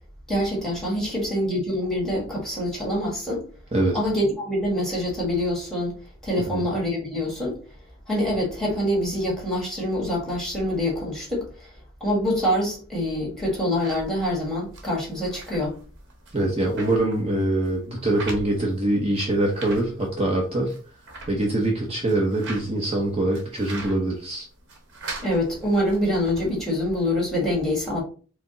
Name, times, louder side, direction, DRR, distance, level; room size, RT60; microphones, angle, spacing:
voice 1, 0.3-3.4 3.9-6.0 6.2-7.6 8.1-11.7 12.0-15.7 25.2-28.0, left 1 dB, ahead, -3 dB, 1.6 m, -25 dB
sound 1, 13.8-26.6, right 2 dB, 55° right, 1.0 m, -42 dB
voice 2, 16.3-20.7 21.3-24.4, right 1 dB, 25° right, -1 dB, 0.8 m, -24 dB
4.8 x 2.0 x 3.8 m, 0.39 s
head